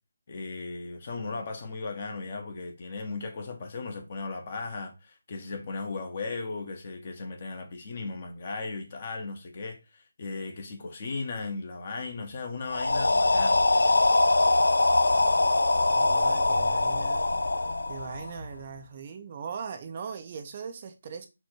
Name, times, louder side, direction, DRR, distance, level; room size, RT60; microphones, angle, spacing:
voice 1, 0.3-14.0, left 3 dB, 35° left, 1.0 m, -37 dB
sound 1, 12.7-18.6, left 2 dB, 80° left, 0.4 m, -23 dB
voice 2, 15.9-17.2 17.9-21.3, right 6 dB, 30° right, 0.5 m, -39 dB
4.3 x 2.6 x 4.5 m
figure-of-eight pair, 165°, 0 cm